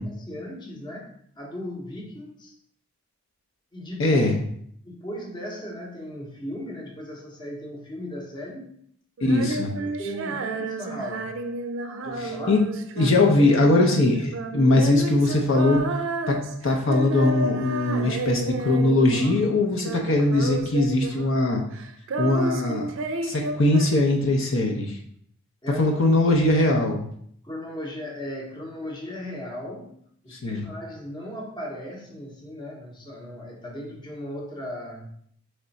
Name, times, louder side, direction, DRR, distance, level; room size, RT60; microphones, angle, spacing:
voice 1, 0.0-2.5 3.7-4.3 4.8-8.8 9.8-11.4 12.0-12.6 25.6-26.0 27.4-30.0 30.2-35.1, equal, 20° left, -1 dB, 0.8 m, -37 dB
voice 2, 4.0-4.4 9.2-9.8 12.2-12.6 13.0-16.0 16.3-21.6 22.2-22.9 23.2-25.0 25.8-27.1 30.3-30.7, left 2 dB, 60° left, 1 dB, 0.6 m, -21 dB
Female singing, 9.2-19.5 19.8-21.5 21.7-24.4, right 3 dB, 60° right, 0.4 m, -32 dB
3.6 x 3.3 x 4.0 m, 0.66 s
head